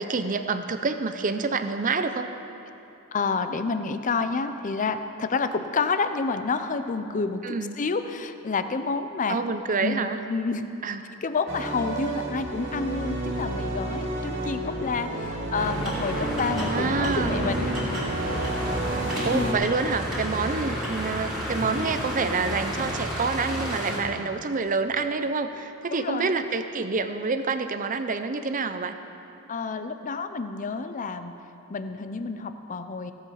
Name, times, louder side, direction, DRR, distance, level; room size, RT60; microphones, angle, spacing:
voice 1, 0.0-2.3 7.4-7.8 9.3-10.2 10.8-11.0 16.7-17.5 19.2-28.9, right 4 dB, 35° right, 9 dB, 0.6 m, -27 dB
voice 2, 3.1-7.4 7.8-9.4 9.8-10.6 11.2-17.8 19.3-19.6 25.9-26.3 29.5-31.4 31.7-33.1, left 4 dB, 35° left, 10 dB, 0.5 m, -29 dB
sound 1, 11.5-19.5, right 2 dB, 55° right, 2.1 m, -31 dB
sound 2, 15.5-24.0, equal, ahead, 3.2 m, -31 dB
16.0 x 7.6 x 5.7 m, 2.9 s
head